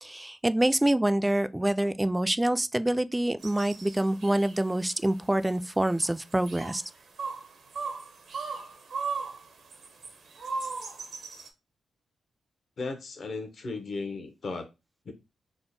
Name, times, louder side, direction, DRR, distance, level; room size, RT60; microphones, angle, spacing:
voice 1, 0.0-6.8, right 1 dB, 15° right, 0.3 m, -26 dB
sound 1, 3.4-11.5, right 4 dB, 75° right, 0.7 m, -38 dB
voice 2, 12.8-14.7 15.1-15.2, left 3 dB, 60° left, 0.7 m, -35 dB
3.5 x 2.1 x 4.0 m
supercardioid pair, 50°, 0 cm